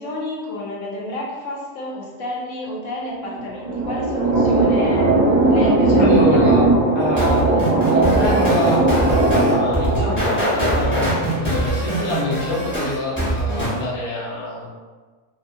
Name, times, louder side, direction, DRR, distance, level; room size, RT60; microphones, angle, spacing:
voice 1, 0.0-5.1 5.5-6.4, left 1 dB, 70° left, -3 dB, 0.9 m, -30 dB
sound 1, 3.2-11.7, right 2 dB, 45° right, 0.6 m, -18 dB
voice 2, 6.0-6.7 6.9-14.7, left 1 dB, 45° left, -6 dB, 0.3 m, -26 dB
sound 2, 7.2-13.8, right 1 dB, 10° left, 0.9 m, -22 dB
2.5 x 2.4 x 2.6 m, 1.4 s
omnidirectional pair, 1.5 m